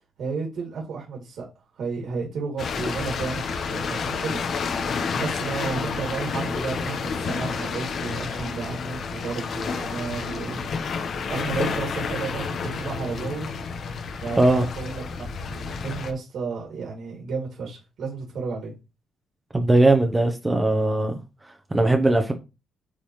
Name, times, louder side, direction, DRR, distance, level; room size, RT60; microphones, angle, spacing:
voice 1, 0.0-1.5 1.8-3.4 3.7-10.7 11.3-13.5 14.2-18.7, right 4 dB, 65° right, 2.6 m, -32 dB
sound 1, 2.6-16.1, left 5 dB, 50° left, 1.0 m, -30 dB
voice 2, 19.5-21.2 21.7-22.3, right 2 dB, 15° right, 0.9 m, -19 dB
8.5 x 3.9 x 3.2 m
cardioid pair, 135°, 0 cm